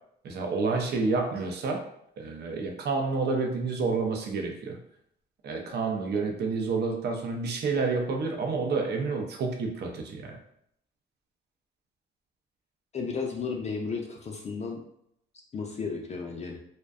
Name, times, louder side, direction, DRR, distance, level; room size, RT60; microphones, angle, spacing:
voice 1, 0.2-1.8 2.2-4.8 5.4-10.4, right 4 dB, 55° right, 3 dB, 0.5 m, -29 dB
voice 2, 12.9-14.8 15.5-16.6, left 5 dB, 35° left, 0 dB, 0.4 m, -33 dB
2.5 x 2.1 x 2.3 m, 0.72 s
cardioid pair, 90°, 20 cm